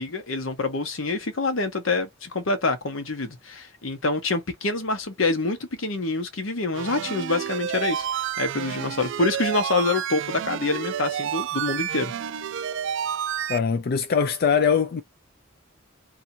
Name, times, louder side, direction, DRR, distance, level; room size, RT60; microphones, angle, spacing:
voice 1, 0.0-12.1, left 3 dB, 80° left, 1.0 m, -26 dB
sound 1, 6.7-13.6, right 9 dB, 65° right, 0.3 m, -30 dB
voice 2, 13.5-15.0, left 6 dB, 50° left, 0.4 m, -22 dB
2.8 x 2.4 x 4.2 m
head